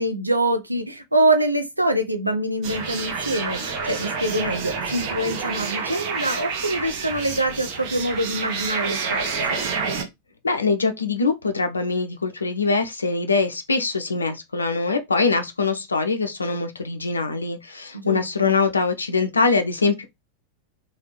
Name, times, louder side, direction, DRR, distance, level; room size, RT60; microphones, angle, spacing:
voice 1, 0.0-9.2 9.5-9.6 17.9-18.5, right 1 dB, 85° right, 0.5 m, -24 dB
sound 1, 2.6-10.0, right 5 dB, 45° right, 0.7 m, -28 dB
voice 2, 10.4-20.0, left 4 dB, 75° left, 0.4 m, -23 dB
3.3 x 2.3 x 3.2 m
figure-of-eight pair, 90°, 0 cm